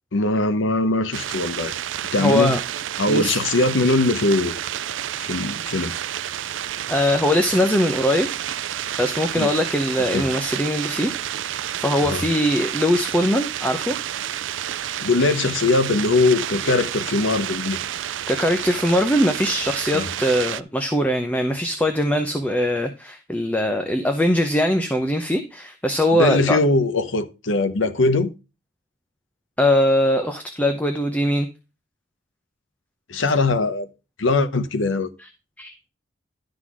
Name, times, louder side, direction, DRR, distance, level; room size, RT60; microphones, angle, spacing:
voice 1, 0.1-1.7 2.1-2.6 3.0-4.6 5.2-5.9 9.4-9.5 10.1-10.3 12.0-12.3 14.8-17.8 19.9-20.1 26.1-28.3 33.1-33.9 34.2-35.1, left 2 dB, 80° left, 0.8 m, -21 dB
sound 1, 1.1-20.6, right 11 dB, 80° right, 0.4 m, -30 dB
voice 2, 2.2-2.6 3.1-3.4 6.9-8.3 9.0-11.1 11.8-14.0 18.3-26.6 29.6-31.5 35.6-35.7, left 1 dB, 10° left, 0.7 m, -21 dB
11.5 x 3.9 x 6.1 m
head